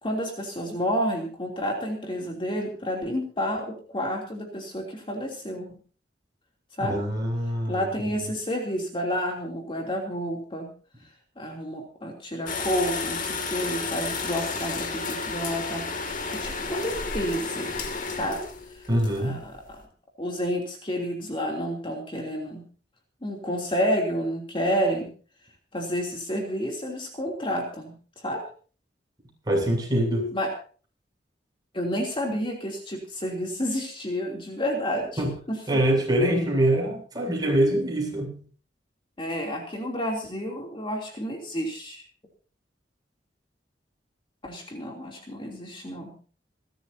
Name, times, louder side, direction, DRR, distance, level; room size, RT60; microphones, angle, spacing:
voice 1, 0.0-5.7 6.8-7.0 7.7-10.7 11.4-17.7 18.1-18.4 18.7-18.9 19.2-19.8 20.2-22.6 23.2-25.1 25.7-28.4 30.3-30.5 31.7-35.6 39.2-42.0 44.4-46.1, equal, 30° left, 1 dB, 3.1 m, -30 dB
voice 2, 6.8-7.9 18.9-19.4 29.5-30.3 35.2-35.3 35.7-38.4, right 1 dB, 25° right, -1 dB, 7.9 m, -24 dB
sound 1, 12.5-19.8, left 4 dB, 50° left, 2.6 m, -32 dB
28.0 x 13.0 x 2.8 m, 0.40 s
head